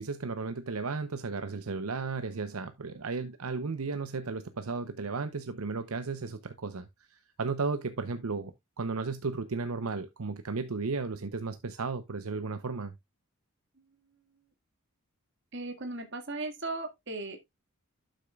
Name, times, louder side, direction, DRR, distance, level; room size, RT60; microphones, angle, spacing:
voice 1, 0.0-12.9, right 4 dB, 80° right, 0.8 m, -34 dB
voice 2, 15.5-17.4, right 2 dB, 55° right, 1.9 m, -37 dB
11.5 x 6.5 x 2.3 m
head